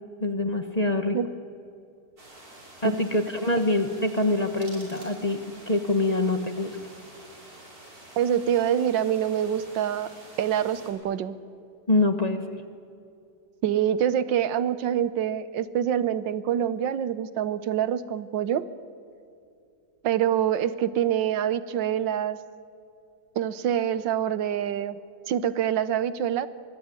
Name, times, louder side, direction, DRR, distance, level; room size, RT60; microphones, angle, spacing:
voice 1, 0.2-1.2 2.8-5.4 5.7-6.8 11.9-12.6, left 2 dB, 25° left, 7 dB, 1.2 m, -25 dB
sound 1, 2.2-10.9, right 1 dB, 50° right, 5.8 m, -48 dB
sound 2, 4.5-5.6, right 1 dB, 35° right, 7.4 m, -50 dB
voice 2, 8.2-10.1 10.4-11.4 13.6-18.6 20.0-22.4 23.3-25.0 25.3-26.5, right 10 dB, 80° right, 14 dB, 1.6 m, -25 dB
23.5 x 23.0 x 9.7 m, 2.6 s
omnidirectional pair, 2.0 m